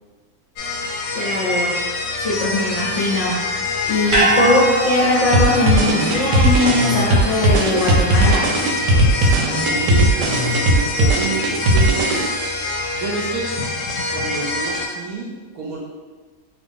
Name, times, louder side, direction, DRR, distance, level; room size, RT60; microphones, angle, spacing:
sound 1, 0.6-14.9, left 2 dB, 90° left, 1.2 m, -25 dB
voice 1, 1.1-1.7 2.2-3.4 3.8-8.4, left 2 dB, 60° left, -6 dB, 0.8 m, -20 dB
sound 2, 4.1-8.5 8.8-8.9, right 1 dB, 35° right, 0.8 m, -24 dB
sound 3, 5.3-12.6, right 1 dB, 90° right, 1.2 m, -18 dB
voice 2, 9.7-10.4 10.7-12.3 12.9-13.7 14.1-15.8, right 4 dB, 70° right, -2 dB, 0.9 m, -29 dB
2.9 x 2.6 x 3.6 m, 1.4 s
omnidirectional pair, 1.8 m